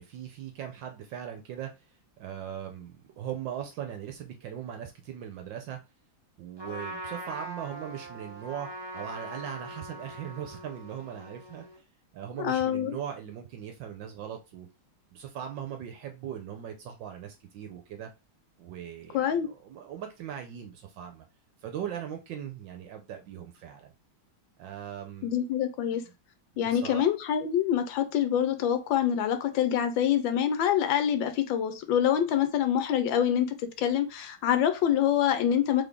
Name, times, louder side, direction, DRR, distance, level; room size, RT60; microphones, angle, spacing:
voice 1, 0.0-1.7 2.2-5.8 6.4-8.7 8.9-11.6 12.1-14.7 15.1-18.1 18.6-21.2 21.6-23.9 24.6-25.4 26.5-27.0, right 9 dB, 75° right, 5 dB, 1.3 m, -39 dB
Trumpet, 6.6-11.8, right 2 dB, 20° right, 0.8 m, -42 dB
voice 2, 12.4-13.0 19.1-19.5 25.2-26.0 26.6-35.8, left 9 dB, 75° left, 9 dB, 1.4 m, -26 dB
4.1 x 3.4 x 3.5 m, 0.27 s
omnidirectional pair, 2.2 m